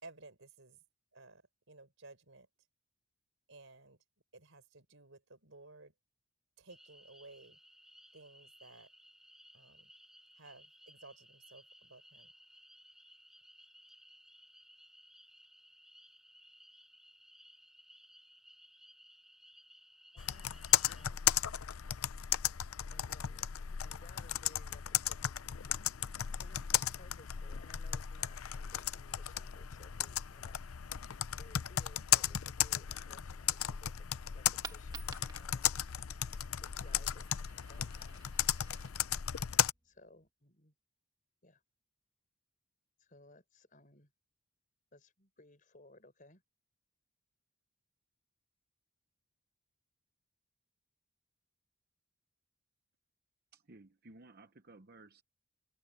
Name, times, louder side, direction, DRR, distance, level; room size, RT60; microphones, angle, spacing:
voice 1, 0.0-0.8 1.1-1.4 1.7-2.5 3.5-4.0 4.3-5.9 6.6-7.6 8.1-8.9 9.5-9.9 10.3-12.3, right 2 dB, 65° right, 4.1 m, -56 dB
sound 1, 6.7-21.1, equal, ahead, 7.7 m, -60 dB
voice 2, 20.1-20.6 20.9-21.3 22.9-25.7 26.2-30.7 31.4-34.1 34.3-35.7 36.6-37.3 37.6-38.4 39.8-40.7 41.4-41.6 43.0-44.1 44.9-46.4, left 2 dB, 40° left, 5.1 m, -61 dB
Computer keyboard, 20.2-39.7, left 11 dB, 80° left, 0.6 m, -35 dB
Coin (dropping), 34.6-40.3, right 5 dB, 20° right, 1.4 m, -54 dB
voice 3, 53.5-55.2, right 2 dB, 45° right, 0.9 m, -57 dB
head